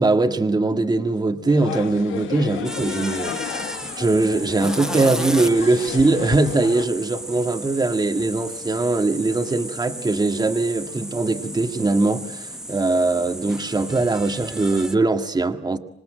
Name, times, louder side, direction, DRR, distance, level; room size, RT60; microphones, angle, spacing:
voice 1, 0.0-15.8, right 3 dB, 20° right, 6 dB, 1.8 m, -21 dB
sound 1, 1.5-6.8, left 10 dB, 80° left, 1.5 m, -33 dB
sound 2, 2.6-14.9, equal, 5° right, 1.0 m, -34 dB
26.5 x 19.5 x 9.0 m, 0.75 s
cardioid pair, 90°, 20 cm